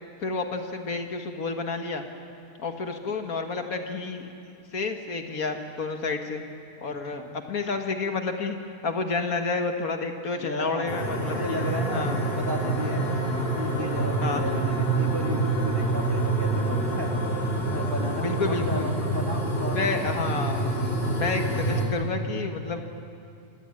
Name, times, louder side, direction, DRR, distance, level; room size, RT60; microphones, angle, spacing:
voice 1, 0.2-2.0 2.6-4.3 4.7-6.4 6.8-8.6 8.8-11.6 11.9-12.2 14.2-14.4 18.2-18.9 19.7-22.8, left 3 dB, 65° left, 5 dB, 2.0 m, -30 dB
voice 2, 6.8-7.3 10.4-13.1 13.5-17.2 17.6-20.1 21.6-21.7, equal, 15° right, 1 dB, 1.9 m, -35 dB
sound 1, 10.9-21.8, right 2 dB, 40° left, 3.9 m, -27 dB
27.5 x 17.5 x 8.6 m, 2.4 s
omnidirectional pair, 1.6 m